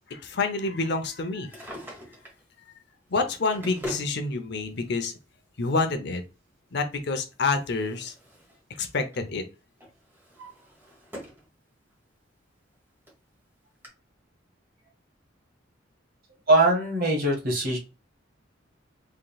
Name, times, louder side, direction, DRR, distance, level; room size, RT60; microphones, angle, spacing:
voice 1, 0.1-1.7 3.1-5.1 5.6-6.2 6.7-8.1 8.8-9.4, left 3 dB, 60° left, 7 dB, 0.7 m, -28 dB
Drawer open or close, 1.3-2.4 3.2-4.1 5.2-5.3 7.1-8.6 8.9-9.3 9.8-11.5 11.9-12.0 12.7-12.8 13.1-13.2 13.8-13.9, equal, 10° right, 1.5 m, -42 dB
voice 2, 16.5-17.8, right 2 dB, 50° right, 0 dB, 1.8 m, -21 dB
3.8 x 3.7 x 2.4 m, 0.29 s
head